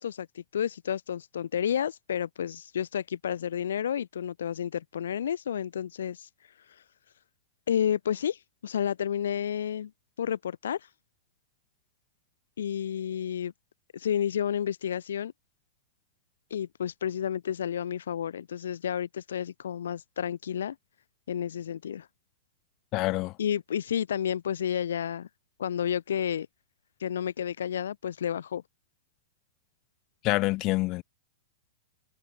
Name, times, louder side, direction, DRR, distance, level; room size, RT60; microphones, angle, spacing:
voice 1, 0.0-6.3 7.7-9.9 10.2-10.8 12.6-13.5 13.9-15.3 16.5-20.8 21.3-22.1 23.4-25.3 25.6-26.5 27.0-28.6, left 9 dB, 85° left, 0.4 m, -31 dB
voice 2, 22.9-23.3 30.2-31.0, left 21 dB, 35° left, 0.7 m, -26 dB
hypercardioid pair, 150°, 0 cm